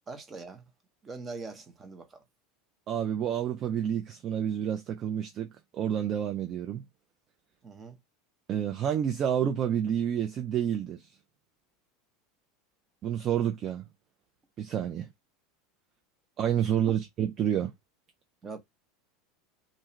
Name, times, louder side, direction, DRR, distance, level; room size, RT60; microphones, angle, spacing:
voice 1, 0.1-0.6 1.0-2.2 7.6-8.0 18.4-18.6, right 4 dB, 25° right, 0.8 m, -42 dB
voice 2, 2.9-5.5 5.7-6.8 8.5-11.0 13.0-13.8 14.6-15.1 16.4-17.7, right 9 dB, 40° right, 0.4 m, -29 dB
2.5 x 2.3 x 2.9 m
figure-of-eight pair, 80°, 0 cm